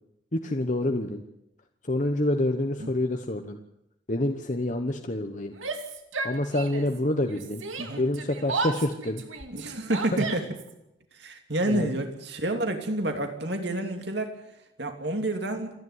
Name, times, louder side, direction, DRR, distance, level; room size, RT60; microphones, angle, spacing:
voice 1, 0.3-1.2 1.9-3.6 4.1-5.5 6.2-7.6 8.0-9.2 11.7-11.9, left 1 dB, 40° left, 5 dB, 1.1 m, -27 dB
Yell, 5.5-7.0 7.3-10.7, right 3 dB, 90° right, 2.6 m, -34 dB
voice 2, 9.5-10.5 11.1-14.4 14.8-15.7, right 1 dB, 60° right, 5 dB, 2.8 m, -29 dB
28.0 x 10.5 x 9.7 m, 0.88 s
head